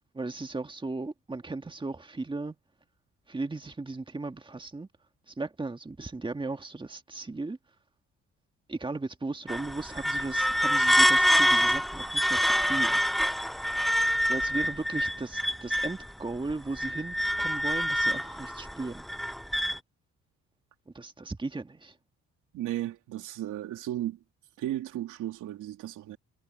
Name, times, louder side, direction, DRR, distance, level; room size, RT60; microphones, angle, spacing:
voice 1, 0.1-2.6 3.3-4.9 5.3-7.6 8.7-13.0 14.3-19.1 20.9-22.0, right 3 dB, 15° right, 1.8 m, -36 dB
sound 1, 9.5-16.1 16.5-19.8, equal, ahead, 0.3 m, -26 dB
voice 2, 22.5-24.2 24.6-26.2, right 13 dB, 85° right, 2.8 m, -34 dB
cardioid pair, 90°, 30 cm